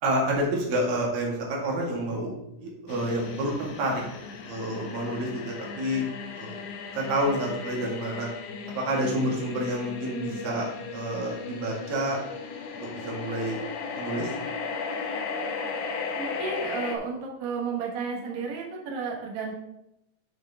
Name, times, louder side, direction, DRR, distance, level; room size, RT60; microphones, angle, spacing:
voice 1, 0.0-2.3 2.6-4.0 4.4-6.0 6.4-6.6 6.9-8.3 8.7-12.2 12.9-13.6 14.0-14.3, right 1 dB, 85° right, -2 dB, 3.5 m, -28 dB
sound 1, 2.9-17.0, left 5 dB, 75° left, 1.5 m, -36 dB
voice 2, 16.1-19.5, right 5 dB, 65° right, -2 dB, 2.5 m, -32 dB
10.0 x 5.5 x 3.4 m, 0.87 s
omnidirectional pair, 3.9 m